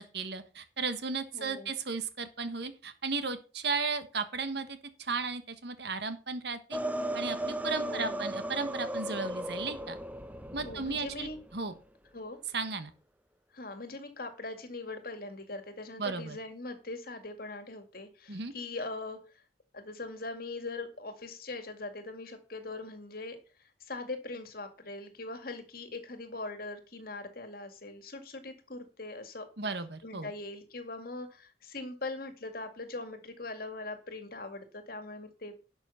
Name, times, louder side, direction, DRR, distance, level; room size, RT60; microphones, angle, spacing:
voice 1, 0.0-6.8 7.1-10.0 10.5-11.7 12.5-12.9 16.0-16.4 18.3-18.5 29.6-30.3, right 4 dB, 65° right, 10 dB, 1.4 m, -35 dB
voice 2, 1.3-1.7 7.9-8.3 10.6-11.4 12.1-12.4 13.5-19.2 19.7-23.4 23.8-29.5 30.0-35.6, left 2 dB, 55° left, 7 dB, 2.1 m, -41 dB
sound 1, 6.7-11.6, right 1 dB, 10° right, 0.7 m, -36 dB
11.5 x 6.3 x 5.7 m, 0.35 s
head